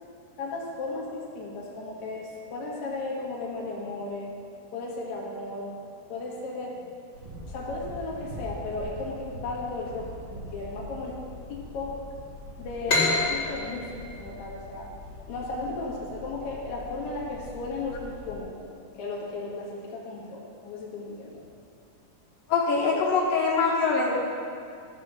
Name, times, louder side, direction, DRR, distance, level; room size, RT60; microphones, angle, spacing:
voice 1, 0.4-4.3 4.7-5.8 6.1-6.8 7.5-11.2 11.5-12.0 12.6-14.9 15.3-21.4, left 3 dB, 60° left, -3 dB, 2.7 m, -35 dB
sound 1, 7.1-18.4, left 1 dB, 75° right, 3.6 m, -43 dB
sound 2, 12.9-16.3, left 3 dB, 35° left, 2.7 m, -28 dB
voice 2, 22.5-24.1, left 4 dB, 80° left, -2 dB, 2.9 m, -23 dB
13.0 x 6.2 x 5.8 m, 2.5 s
omnidirectional pair, 3.9 m